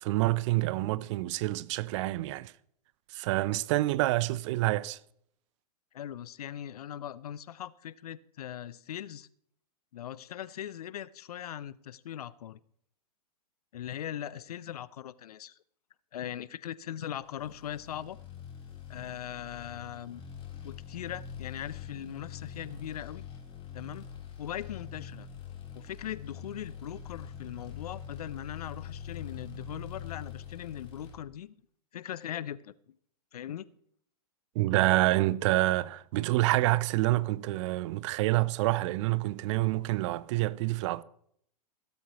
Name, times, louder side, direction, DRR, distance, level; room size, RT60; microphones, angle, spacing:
voice 1, 0.0-2.5 3.1-5.0 34.5-41.0, right 18 dB, 50° right, 0.7 m, -27 dB
voice 2, 5.9-9.3 9.9-12.6 13.7-15.6 16.1-18.2 18.9-20.2 20.6-23.2 23.7-24.0 24.4-25.3 25.7-31.6 31.9-32.7 33.3-33.7, left 10 dB, 70° left, 0.7 m, -40 dB
sound 1, 17.3-31.1, left 7 dB, 25° left, 3.7 m, -44 dB
16.5 x 13.0 x 3.1 m
hypercardioid pair, 110°, 20 cm